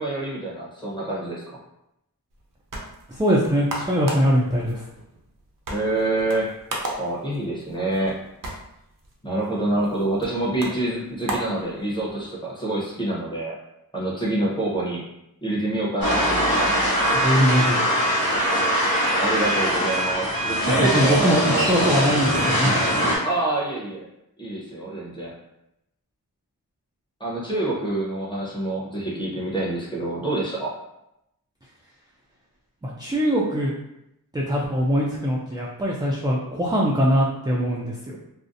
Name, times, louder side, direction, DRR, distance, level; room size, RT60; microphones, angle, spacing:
voice 1, 0.0-1.6 5.7-6.5 7.0-8.2 9.2-13.5 13.9-15.0 15.4-16.7 19.2-21.6 23.2-24.1 24.4-25.3 27.2-30.7, right 2 dB, 15° left, -5 dB, 0.7 m, -26 dB
sound 1, 2.3-12.3, right 1 dB, 60° right, 0.6 m, -37 dB
voice 2, 3.1-4.8 17.1-17.8 20.7-22.8 32.8-33.7 34.3-38.2, equal, 10° right, -4 dB, 0.3 m, -22 dB
sound 2, 16.0-23.2, equal, 70° left, 0.9 m, -22 dB
2.5 x 2.0 x 2.6 m, 0.86 s
wide cardioid pair, 60°, 37 cm